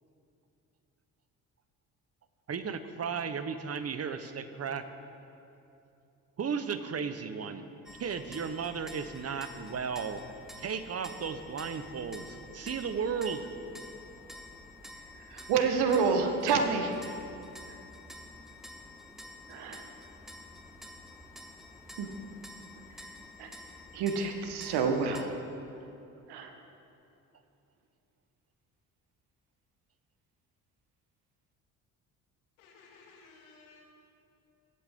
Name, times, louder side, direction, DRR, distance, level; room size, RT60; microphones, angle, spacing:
voice 1, 2.5-4.9 6.4-7.7 8.0-10.2 10.6-13.5, right 6 dB, 35° right, 11 dB, 1.0 m, -35 dB
sound 1, 7.9-25.2, left 1 dB, ahead, 1.3 m, -49 dB
voice 2, 15.2-16.9 17.7-17.8 19.5-19.9 22.0-22.1 23.0-23.1 23.4-23.5 23.9-25.4 26.3-26.6, right 5 dB, 70° right, 5 dB, 1.4 m, -29 dB
voice 3, 32.6-33.8, left 4 dB, 85° left, -1 dB, 2.2 m, -56 dB
20.0 x 8.2 x 3.7 m, 2.7 s
hypercardioid pair, 60°, 41 cm